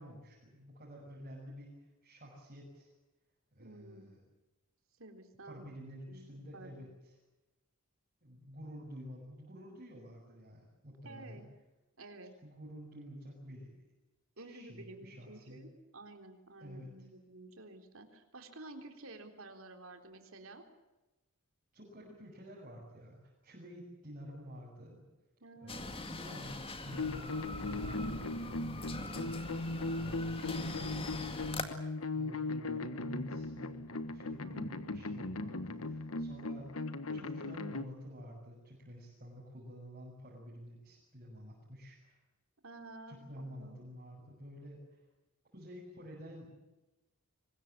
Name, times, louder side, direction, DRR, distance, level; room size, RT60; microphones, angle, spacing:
voice 1, 0.0-2.9 3.5-4.2 5.4-7.1 8.2-11.4 12.4-13.7 14.4-15.6 16.6-16.9 21.7-25.0 25.6-31.2 32.1-36.7 37.1-42.2 43.1-45.0 45.5-46.5, equal, 40° right, -4 dB, 6.8 m, -50 dB
voice 2, 3.6-4.1 5.0-5.7 6.1-6.8 11.0-11.5 12.0-12.3 14.4-20.6 25.4-26.1 29.5-30.1 34.4-34.9 42.6-43.8, right 2 dB, 65° right, 5 dB, 3.8 m, -52 dB
sound 1, 25.7-31.6, left 2 dB, 25° left, 2.1 m, -43 dB
sound 2, 26.9-37.8, left 2 dB, 70° left, 1.5 m, -38 dB
24.5 x 21.0 x 8.6 m, 1.0 s
head